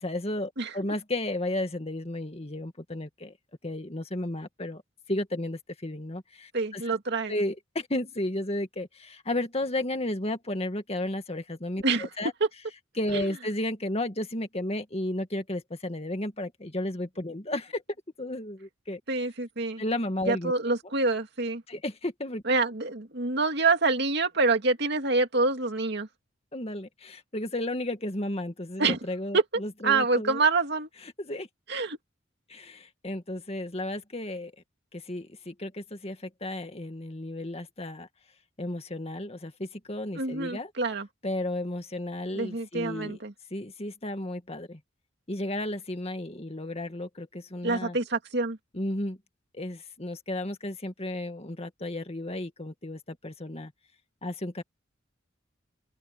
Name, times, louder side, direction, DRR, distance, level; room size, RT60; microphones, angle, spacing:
voice 1, 0.0-3.3 3.6-4.8 5.1-7.0 7.3-12.3 13.0-17.8 18.2-19.0 19.8-20.5 21.7-22.4 26.5-30.4 31.2-31.5 32.5-34.5 34.9-38.1 38.6-40.7 41.2-43.2 43.5-44.8 45.3-48.0 48.7-49.2 49.5-53.7 54.2-54.6, left 1 dB, 30° left, 2.1 m, -33 dB
voice 2, 6.5-7.4 11.8-12.1 12.4-12.5 13.1-13.3 19.1-19.8 20.3-21.6 22.4-26.1 28.8-29.0 29.3-29.4 29.8-30.9 31.7-32.0 40.1-41.1 42.3-43.3 47.6-48.6, right 3 dB, 60° right, 2.4 m, -26 dB
open air
head